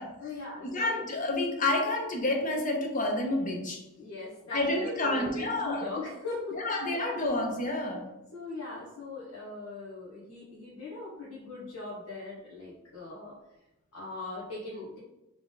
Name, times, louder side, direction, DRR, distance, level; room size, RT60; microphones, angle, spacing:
voice 1, 0.0-1.0 4.0-6.6 8.3-13.3 13.9-15.0, left 3 dB, 80° left, -7 dB, 1.2 m, -40 dB
voice 2, 0.6-3.8 4.5-5.9 6.6-8.1, left 2 dB, 35° left, 1 dB, 0.8 m, -29 dB
3.8 x 3.4 x 3.9 m, 0.94 s
head